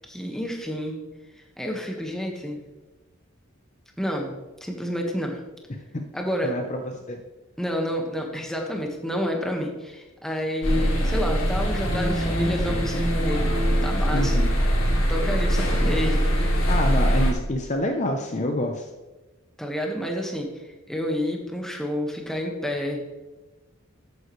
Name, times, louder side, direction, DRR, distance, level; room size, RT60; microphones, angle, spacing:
voice 1, 0.1-1.0 1.6-2.6 4.0-4.3 4.6-5.4 6.1-6.5 7.6-13.6 13.8-14.6 15.1-16.5 19.6-23.0, equal, ahead, 1 dB, 1.5 m, -29 dB
voice 2, 6.4-6.8 7.1-7.2 14.1-14.4 16.7-18.9, left 1 dB, 35° left, 4 dB, 0.7 m, -26 dB
sound 1, 10.6-17.3, equal, 75° left, 3.8 m, -22 dB
13.0 x 9.4 x 3.2 m, 1.1 s
head